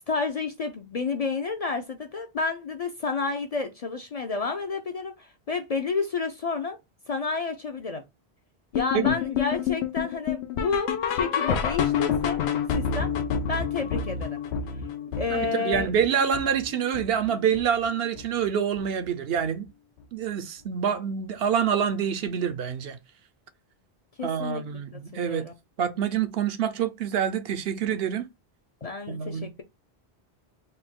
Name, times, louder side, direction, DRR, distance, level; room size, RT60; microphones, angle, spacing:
voice 1, 0.1-6.8 7.1-8.0 8.7-12.4 12.7-13.1 13.5-14.4 15.1-15.9 24.2-24.6 24.9-25.5 28.8-29.6, left 4 dB, 45° left, 0.5 m, -30 dB
sound 1, 8.7-17.9 18.2-18.5 18.8-18.9 19.4-19.5 20.0-20.1, left 7 dB, 90° left, 0.9 m, -29 dB
voice 2, 15.3-19.7 20.1-23.0 24.2-25.5 25.8-28.3 29.1-29.5, right 8 dB, 70° right, 0.8 m, -26 dB
4.1 x 2.2 x 3.7 m
omnidirectional pair, 1.1 m